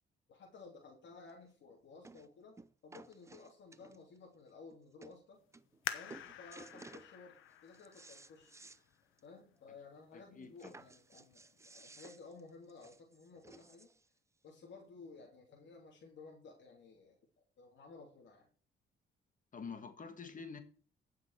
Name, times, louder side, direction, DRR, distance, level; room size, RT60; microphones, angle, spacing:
voice 1, 0.3-5.4 5.9-7.3 7.6-8.5 9.2-13.9 14.4-17.2 17.6-18.5, left 4 dB, 65° left, 3.1 m, -55 dB
sound 1, 1.3-1.4 2.0-2.3 2.6-4.2 4.7-4.8 5.0-5.2 5.5-5.8 6.1-7.1 7.5-8.8 9.2-9.3 9.6-9.7 10.6-14.1 14.9-15.0, right 3 dB, 15° right, 0.6 m, -56 dB
sound 2, 5.8-9.2 9.8-9.9 10.6-10.9 11.3-11.4, left 11 dB, 85° left, 1.1 m, -46 dB
voice 2, 10.1-10.8 19.5-20.6, left 5 dB, 40° left, 1.9 m, -47 dB
16.0 x 6.0 x 4.9 m
cardioid pair, 90°, 20 cm